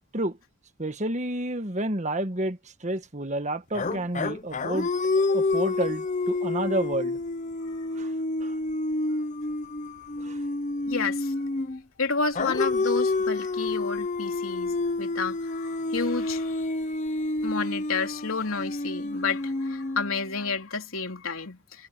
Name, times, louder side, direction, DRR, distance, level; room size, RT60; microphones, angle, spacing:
voice 1, 0.8-4.9 5.3-7.2 8.0-8.1 8.4-8.5 10.2-10.4, right 1 dB, 35° right, 1.5 m, -30 dB
sound 1, 3.7-11.8 12.4-20.4, left 2 dB, 35° left, 0.8 m, -29 dB
voice 2, 10.9-11.3 12.0-16.5 17.4-21.9, left 4 dB, 85° left, 3.3 m, -31 dB
head